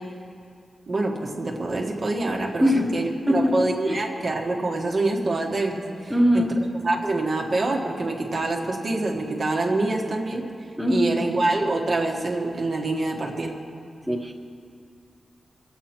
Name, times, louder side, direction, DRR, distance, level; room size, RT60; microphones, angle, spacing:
voice 1, 0.9-6.4 6.8-10.4 10.9-13.5, right 2 dB, 45° right, 0 dB, 1.5 m, -26 dB
voice 2, 3.3-4.0 6.1-6.6 10.8-11.3 14.1-14.3, equal, 5° right, 0 dB, 1.4 m, -22 dB
24.5 x 8.2 x 4.4 m, 2.4 s
wide cardioid pair, 135°, 0 cm